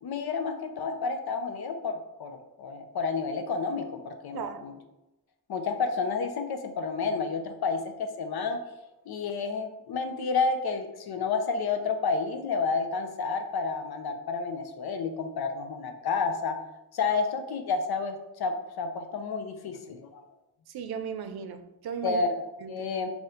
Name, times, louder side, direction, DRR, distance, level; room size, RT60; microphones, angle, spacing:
voice 1, 0.0-4.8 5.5-8.6 9.1-16.6 16.9-20.2 22.0-23.1, left 4 dB, 85° left, 7 dB, 0.7 m, -30 dB
voice 2, 20.7-22.2 22.6-22.9, right 7 dB, 90° right, 8 dB, 0.5 m, -36 dB
4.2 x 2.9 x 3.8 m, 0.94 s
wide cardioid pair, 125°, 37 cm